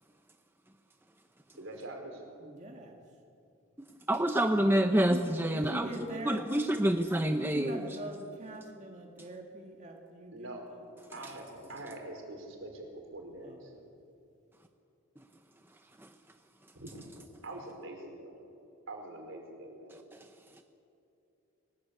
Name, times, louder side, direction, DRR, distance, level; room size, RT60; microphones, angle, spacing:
voice 1, 1.6-2.2 10.3-10.7 11.1-13.7 16.7-17.2 17.4-18.4 18.9-20.0, right 1 dB, 65° right, 2 dB, 4.6 m, -44 dB
voice 2, 2.4-3.0 4.9-6.7 7.4-10.8 13.4-13.8, right 1 dB, 35° right, 1 dB, 2.1 m, -43 dB
voice 3, 4.1-5.9 6.3-7.8 16.0-16.1 20.1-20.3, right 1 dB, 10° right, 6 dB, 0.7 m, -27 dB
23.0 x 19.5 x 8.4 m, 2.8 s
head